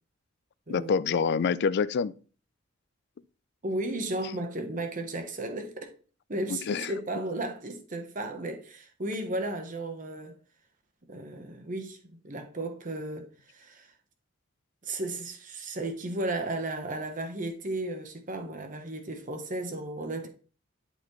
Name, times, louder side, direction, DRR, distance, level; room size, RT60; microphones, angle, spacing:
voice 1, 0.7-2.1 6.5-6.9, left 6 dB, 55° left, 0.3 m, -26 dB
voice 2, 3.6-5.9 6.3-10.4 11.1-13.9 14.8-20.3, right 1 dB, 40° right, 1.0 m, -34 dB
11.0 x 4.0 x 3.1 m
head